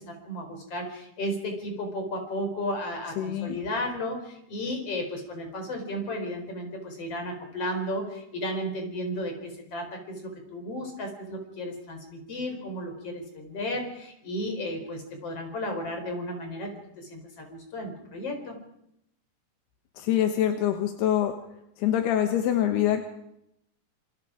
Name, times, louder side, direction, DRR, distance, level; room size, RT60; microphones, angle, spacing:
voice 1, 0.0-18.6, left 1 dB, 35° left, 4 dB, 5.0 m, -34 dB
voice 2, 3.2-3.6 20.0-21.3 21.8-23.0, left 11 dB, 85° left, 6 dB, 3.3 m, -25 dB
27.0 x 25.5 x 5.0 m, 0.78 s
omnidirectional pair, 4.6 m